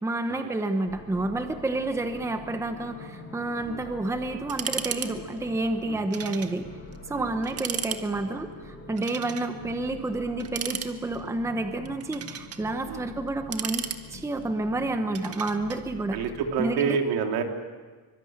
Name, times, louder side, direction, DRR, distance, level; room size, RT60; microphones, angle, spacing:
voice 1, 0.0-6.7 7.1-13.8 14.1-16.2 16.6-17.0, right 2 dB, 5° right, 7 dB, 1.1 m, -29 dB
sound 1, 0.9-16.6, left 2 dB, 35° left, 6.4 m, -45 dB
sound 2, 4.5-5.1 5.4-5.5 6.1-6.5 6.9-7.0 7.4-8.0 9.0-9.5 10.4-11.3 11.9-12.6 13.3-14.4 15.1-15.8, right 9 dB, 40° right, 1.5 m, -34 dB
voice 2, 16.1-17.4, right 6 dB, 70° right, 4 dB, 3.2 m, -28 dB
25.0 x 24.0 x 8.8 m, 1.4 s
cardioid pair, 180°, 38 cm